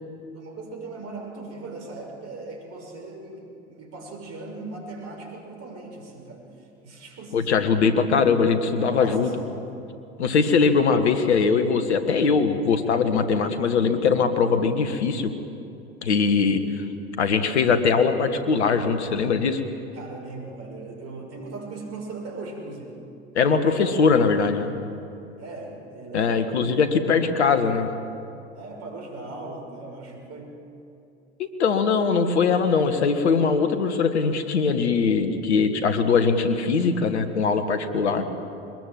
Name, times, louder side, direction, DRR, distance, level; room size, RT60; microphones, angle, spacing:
voice 1, 0.3-7.8 8.7-9.8 10.5-10.7 19.9-23.0 23.4-24.2 25.4-26.8 27.1-27.7 28.5-30.5, right 2 dB, 50° right, 1 dB, 6.2 m, -39 dB
voice 2, 7.3-9.3 10.2-15.3 16.0-16.8 17.2-19.6 23.3-24.7 26.1-27.9 31.4-38.2, left 5 dB, 85° left, 9 dB, 1.5 m, -21 dB
22.5 x 20.5 x 7.6 m, 2.7 s
hypercardioid pair, 70°, 33 cm